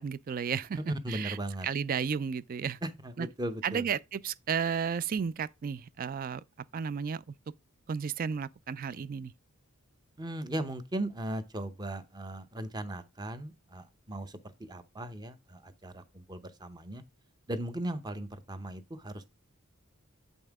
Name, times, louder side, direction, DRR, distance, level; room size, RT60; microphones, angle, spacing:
voice 1, 0.0-0.8 1.1-1.4 1.6-2.8 3.2-3.3 3.6-6.4 6.7-7.3 7.9-9.3, right 6 dB, 40° right, 0.3 m, -33 dB
voice 2, 0.7-1.7 2.8-3.9 10.2-17.0 17.5-19.3, right 1 dB, 20° right, 0.7 m, -37 dB
7.9 x 5.5 x 3.5 m
head